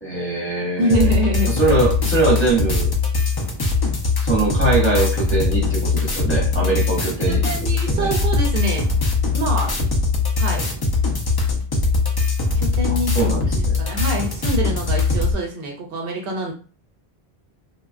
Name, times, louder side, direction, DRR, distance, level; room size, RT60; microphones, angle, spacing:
voice 1, 0.0-1.1 1.6-2.9 4.2-7.4 7.9-8.1 13.1-13.8, right 3 dB, 15° left, -6 dB, 0.9 m, -22 dB
voice 2, 0.8-1.5 7.3-8.9 9.3-9.8 10.4-10.7 12.6-16.5, right 1 dB, 70° right, 1 dB, 0.8 m, -25 dB
sound 1, 0.9-15.3, left 4 dB, 40° left, 0.3 m, -21 dB
3.1 x 2.1 x 2.4 m, 0.38 s
omnidirectional pair, 1.0 m